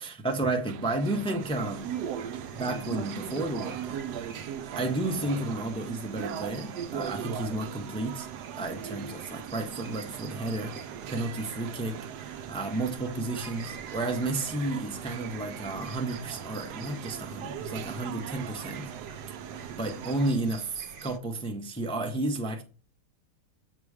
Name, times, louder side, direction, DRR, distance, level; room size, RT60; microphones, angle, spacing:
voice 1, 0.0-1.9 2.5-4.3 4.7-8.3 8.6-18.9 19.8-22.6, right 2 dB, 5° left, 0.5 m, -32 dB
sound 1, 0.7-20.3, right 9 dB, 90° right, 1.2 m, -39 dB
sound 2, 1.4-21.2, right 5 dB, 60° right, 0.6 m, -48 dB
8.2 x 3.0 x 4.8 m
omnidirectional pair, 1.7 m